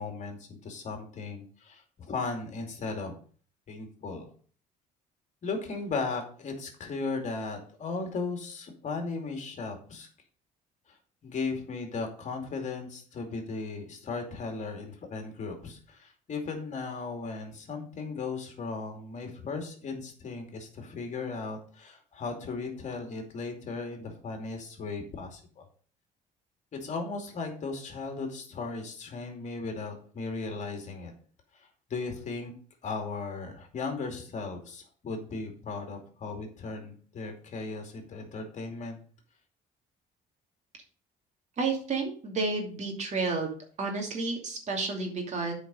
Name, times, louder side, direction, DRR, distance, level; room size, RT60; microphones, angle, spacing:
voice 1, 0.0-3.1 3.7-4.3 5.4-10.1 10.9-11.0 11.2-25.6 26.8-31.1 31.5-32.5 32.8-39.0, left 4 dB, 45° left, 3 dB, 2.5 m, -36 dB
voice 2, 41.6-43.5 43.8-45.5, right 3 dB, 45° right, 2 dB, 2.6 m, -31 dB
9.0 x 5.1 x 5.4 m, 0.44 s
cardioid pair, 110°, 17 cm